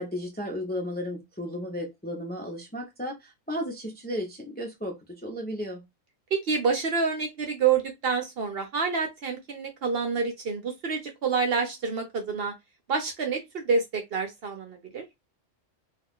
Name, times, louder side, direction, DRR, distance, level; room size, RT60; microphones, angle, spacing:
voice 1, 0.0-5.8, equal, 10° left, 0.5 m, -34 dB
voice 2, 6.3-12.5 12.9-15.0, right 5 dB, 55° right, 0.8 m, -28 dB
2.4 x 2.4 x 3.6 m
omnidirectional pair, 1.3 m